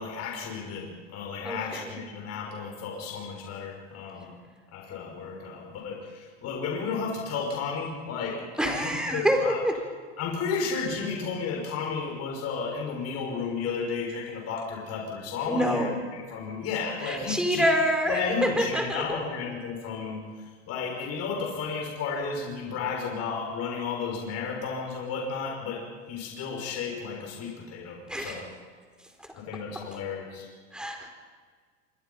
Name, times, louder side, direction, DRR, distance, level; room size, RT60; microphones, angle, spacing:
voice 1, 0.0-4.3 4.7-9.6 10.2-17.6 18.1-28.5 29.3-30.5, left 5 dB, 45° left, 0 dB, 6.3 m, -33 dB
voice 2, 1.4-1.9 8.6-9.8 15.5-16.0 17.0-19.2 28.1-28.4 30.7-31.1, equal, ahead, 3 dB, 4.6 m, -26 dB
26.0 x 24.0 x 5.8 m, 1.5 s
supercardioid pair, 120°, 36 cm